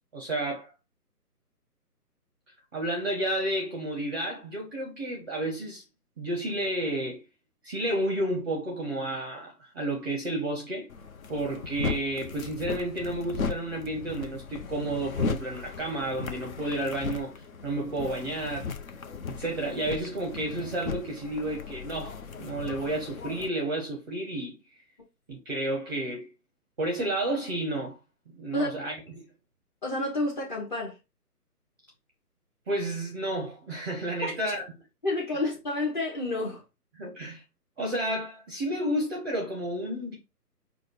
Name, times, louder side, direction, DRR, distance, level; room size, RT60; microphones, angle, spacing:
voice 1, 0.1-0.7 2.7-5.8 6.2-7.2 7.6-10.9 11.3-18.7 19.3-24.6 25.3-26.3 26.8-28.0 28.3-29.3 32.7-34.6 37.0-37.4 37.8-40.1, right 1 dB, 15° right, 0.6 m, -31 dB
sound 1, 10.9-23.5, left 5 dB, 60° left, 0.8 m, -36 dB
voice 2, 29.8-31.0 34.2-34.3 35.0-36.6, left 2 dB, 30° left, 0.9 m, -29 dB
5.0 x 2.2 x 4.3 m
figure-of-eight pair, 145°, 47 cm